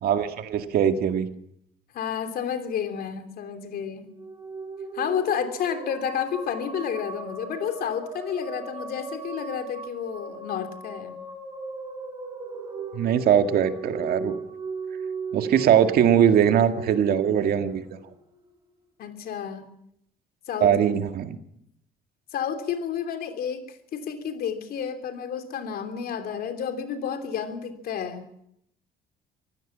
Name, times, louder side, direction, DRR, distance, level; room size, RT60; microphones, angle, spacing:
voice 1, 0.0-1.3 12.9-14.4 15.3-17.8 20.6-21.4, right 9 dB, 65° right, 8 dB, 1.9 m, -21 dB
voice 2, 1.9-4.2 4.9-11.2 19.0-19.7 20.5-20.7 22.3-28.2, left 8 dB, 65° left, 7 dB, 3.2 m, -31 dB
sound 1, 4.0-18.5, right 4 dB, 20° right, 4.4 m, -37 dB
24.0 x 15.5 x 7.4 m, 0.74 s
cardioid pair, 110°, 17 cm